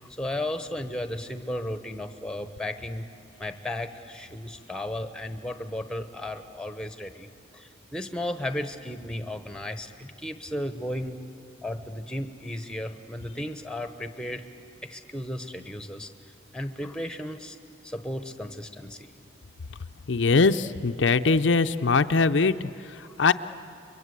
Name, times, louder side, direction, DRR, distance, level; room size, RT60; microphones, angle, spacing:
voice 1, 0.2-3.1 3.4-7.3 7.5-11.2 11.6-14.4 14.8-16.1 16.5-17.6 17.8-19.1 23.0-23.2, left 1 dB, 5° left, 8 dB, 1.0 m, -34 dB
voice 2, 20.1-23.3, left 4 dB, 70° left, 9 dB, 0.6 m, -22 dB
30.0 x 23.0 x 8.2 m, 2.4 s
head